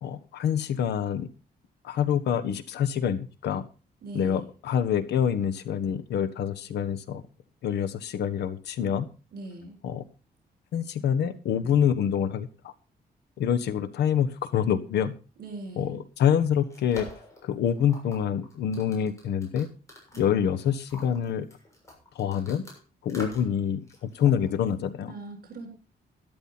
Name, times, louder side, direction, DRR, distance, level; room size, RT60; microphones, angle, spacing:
voice 1, 0.0-1.3 1.8-3.6 4.1-7.2 7.6-9.0 9.8-10.1 10.7-12.7 13.4-15.1 15.8-17.1 17.4-19.7 20.2-21.5 22.1-22.6 23.0-25.1, left 8 dB, 90° left, 10 dB, 1.3 m, -26 dB
voice 2, 4.0-4.5 9.3-9.8 15.4-16.0 20.1-20.4 25.1-25.7, right 2 dB, 65° right, 3 dB, 7.5 m, -40 dB
opening closing jewelry ring box eyeglass case, 16.7-22.8 23.1-23.6 23.9-24.9, left 1 dB, 20° left, 6.9 m, -45 dB
12.5 x 12.0 x 4.3 m, 0.34 s
cardioid pair, 145°, 17 cm